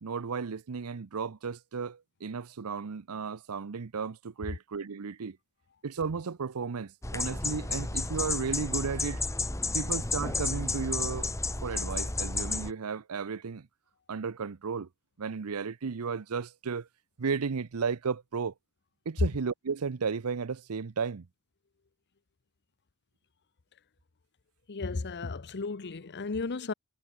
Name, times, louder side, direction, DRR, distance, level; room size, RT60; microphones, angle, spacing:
voice 1, 0.0-5.4 5.8-9.2 9.7-11.3 11.6-13.7 14.1-14.9 15.2-16.9 17.2-18.5 19.1-21.3, right 5 dB, 80° right, 0.6 m, -34 dB
sound 1, 7.0-12.7, left 3 dB, 15° left, 1.3 m, -32 dB
voice 2, 24.7-26.7, left 3 dB, 50° left, 0.8 m, -34 dB
head